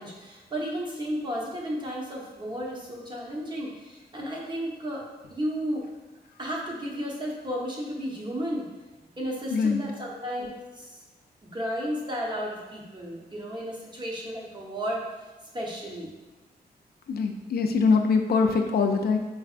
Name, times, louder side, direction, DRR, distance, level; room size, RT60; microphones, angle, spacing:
voice 1, 0.0-5.9 6.4-8.7 9.2-11.0 11.4-15.0 15.5-16.1, equal, 25° right, -3 dB, 0.9 m, -33 dB
voice 2, 9.5-9.8 17.1-19.2, left 5 dB, 70° left, 4 dB, 0.4 m, -23 dB
4.0 x 3.4 x 2.4 m, 1.2 s
cardioid pair, 85°, 17 cm